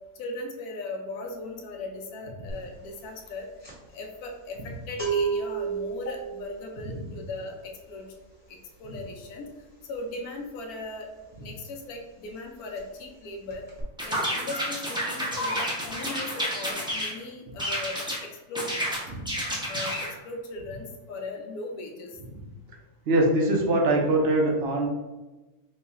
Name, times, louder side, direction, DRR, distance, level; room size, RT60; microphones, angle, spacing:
voice 1, 0.2-3.5 3.9-8.1 8.5-9.5 9.9-11.1 11.4-13.6 14.1-18.6 19.7-22.1, left 2 dB, 90° left, 2 dB, 1.1 m, -38 dB
sound 1, 2.5-2.8 3.0-11.6 11.9-12.1 12.3-13.2 13.5-13.8, right 6 dB, 20° left, 0.9 m, -33 dB
sound 2, 14.0-17.1 17.6-18.2 18.5-20.1, equal, 5° right, 0.5 m, -30 dB
voice 2, 23.1-24.9, right 1 dB, 60° right, 0 dB, 0.7 m, -22 dB
3.1 x 2.3 x 4.0 m, 1.1 s
omnidirectional pair, 1.5 m